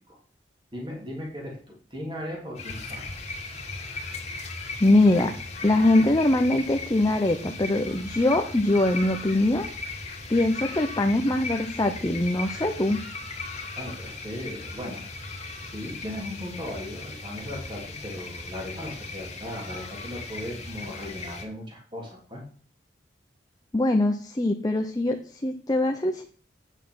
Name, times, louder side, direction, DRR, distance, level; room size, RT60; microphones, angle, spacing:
voice 1, 0.7-3.1 13.8-15.0 15.6-22.4, left 1 dB, 25° right, -1 dB, 3.0 m, -37 dB
sound 1, 2.5-21.4, left 3 dB, 35° left, 2.0 m, -37 dB
voice 2, 4.8-5.3 5.6-9.7 10.3-13.0 23.7-25.2 25.4-26.3, left 1 dB, 20° left, 4 dB, 0.7 m, -22 dB
9.1 x 6.3 x 6.2 m, 0.42 s
head